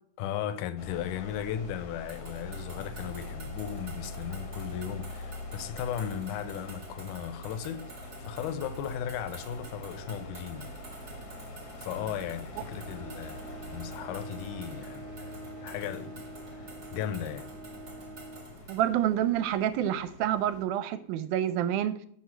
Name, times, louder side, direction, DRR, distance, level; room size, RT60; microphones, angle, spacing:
voice 1, 0.2-10.8 11.8-15.3 15.6-17.5, left 9 dB, 80° left, 1.9 m, -36 dB
sound 1, 0.8-20.6, left 2 dB, 60° left, 1.0 m, -44 dB
sound 2, 2.1-18.9, right 3 dB, 35° right, 1.4 m, -51 dB
Bowed string instrument, 12.5-19.2, right 1 dB, 55° right, 1.7 m, -46 dB
voice 2, 18.7-22.0, right 11 dB, 80° right, 2.0 m, -28 dB
6.3 x 5.8 x 4.4 m
omnidirectional pair, 3.8 m